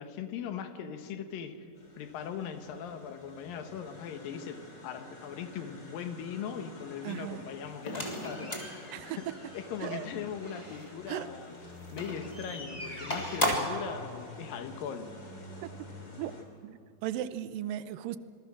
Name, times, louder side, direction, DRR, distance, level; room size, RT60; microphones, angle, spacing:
voice 1, 0.0-1.7 2.0-9.3 9.5-11.6 11.9-15.1, left 7 dB, 80° left, 8 dB, 3.0 m, -40 dB
sound 1, 1.8-16.4, left 1 dB, 30° left, 3.4 m, -49 dB
voice 2, 7.0-7.5 8.9-9.2 9.8-10.1 11.1-11.3 13.5-13.6 15.6-15.7 16.2-18.2, right 12 dB, 80° right, 14 dB, 2.3 m, -37 dB
sound 2, 7.9-10.9 11.9-13.9, equal, 10° left, 3.0 m, -36 dB
26.0 x 21.0 x 6.2 m, 2.5 s
omnidirectional pair, 4.0 m